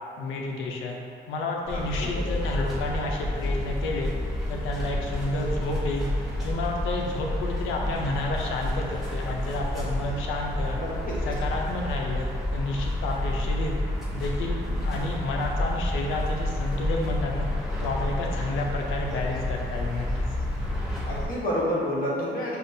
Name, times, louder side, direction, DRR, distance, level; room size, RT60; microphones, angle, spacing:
voice 1, 0.2-4.1 4.5-6.1 6.4-10.8 11.2-13.8 14.1-17.5 17.8-20.2, left 2 dB, 90° left, 0 dB, 0.5 m, -30 dB
sound 1, 1.6-21.3, left 1 dB, ahead, 1.0 m, -30 dB
voice 2, 1.7-2.2 10.7-11.1 21.1-22.6, equal, 45° left, -6 dB, 1.1 m, -29 dB
sound 2, 2.1-20.1, left 1 dB, 30° right, 0.6 m, -39 dB
5.1 x 2.4 x 2.7 m, 2.4 s
cardioid pair, 90°, 20 cm